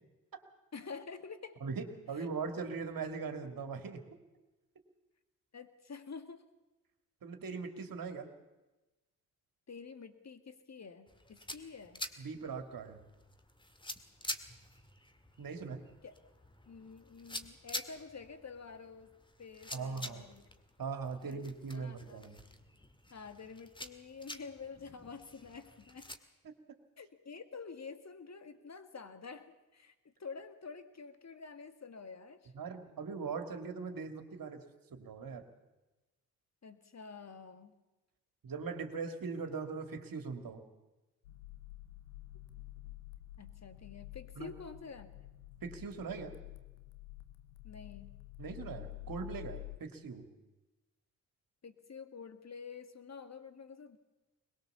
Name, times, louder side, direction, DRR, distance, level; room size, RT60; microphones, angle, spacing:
voice 1, 0.7-1.6 2.2-2.3 5.5-6.4 9.7-12.0 16.0-16.1 16.7-19.1 19.4-20.4 21.2-21.4 21.7-22.4 23.1-26.1 27.0-32.5 36.6-37.7 43.4-45.1 47.6-48.1 51.6-54.0, left 5 dB, 40° left, 9 dB, 2.2 m, -48 dB
voice 2, 1.6-4.0 7.2-8.3 12.2-13.0 15.4-15.8 19.7-20.3 20.8-22.4 26.4-26.5 32.5-34.6 34.9-35.5 38.4-40.6 44.4-44.5 45.6-46.3 48.4-50.3, right 5 dB, 50° right, 6 dB, 2.7 m, -40 dB
sound 1, 11.1-26.2, left 1 dB, 10° left, 2.0 m, -48 dB
sound 2, 41.2-49.8, left 18 dB, 90° left, 0.9 m, -49 dB
22.0 x 21.0 x 7.0 m, 1.1 s
hypercardioid pair, 40°, 43 cm